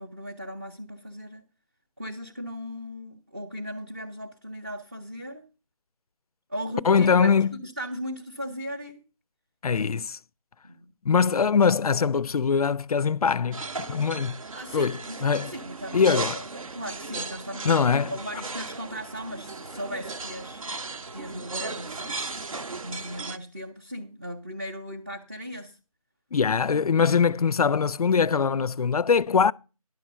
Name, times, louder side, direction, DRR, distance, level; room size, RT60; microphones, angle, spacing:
voice 1, 0.0-1.4 2.0-5.4 6.5-7.3 7.6-9.0 10.6-10.9 14.5-17.8 18.1-20.8 21.1-22.3 22.7-25.8, equal, 20° right, 0.6 m, -37 dB
voice 2, 6.8-7.5 9.6-10.2 11.0-14.4 14.7-15.5 15.9-16.4 17.6-18.1 26.3-29.5, left 6 dB, 80° left, 0.4 m, -22 dB
sound 1, 13.5-23.4, right 3 dB, 65° right, 0.8 m, -36 dB
10.5 x 6.3 x 5.4 m
figure-of-eight pair, 165°, 19 cm